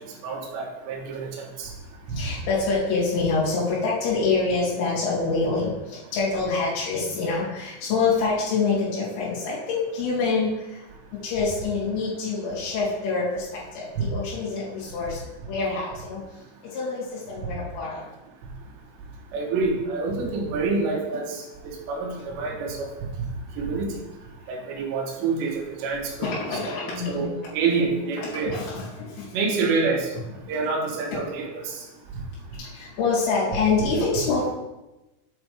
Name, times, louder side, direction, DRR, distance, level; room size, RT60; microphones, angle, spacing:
voice 1, 0.2-1.7 2.1-2.2 14.0-14.1 19.3-22.9 23.6-23.9 24.5-28.6 29.3-30.1 30.5-31.8, right 4 dB, 75° right, 0 dB, 2.9 m, -27 dB
voice 2, 2.1-10.8 11.2-16.2 16.7-18.0 26.2-27.3 28.3-29.3 32.6-34.5, left 4 dB, 65° left, -7 dB, 4.2 m, -26 dB
8.1 x 3.4 x 4.7 m, 1.0 s
omnidirectional pair, 5.7 m